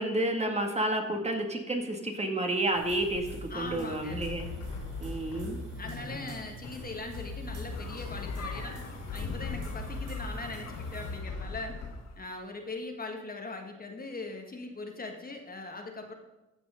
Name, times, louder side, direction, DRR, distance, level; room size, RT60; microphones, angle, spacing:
voice 1, 0.0-4.5 5.0-5.6, right 1 dB, 20° right, 3 dB, 1.8 m, -30 dB
sound 1, 2.7-11.2, right 4 dB, 80° right, 3.1 m, -48 dB
sound 2, 3.1-11.9, left 3 dB, 85° left, 3.5 m, -40 dB
voice 2, 3.5-4.2 5.8-8.8 9.1-11.8 12.1-16.1, left 3 dB, 30° left, 3 dB, 1.5 m, -40 dB
sound 3, 7.7-12.3, left 5 dB, 60° left, 1.5 m, -42 dB
14.0 x 6.1 x 5.6 m, 1.0 s
cardioid pair, 90°, 30 cm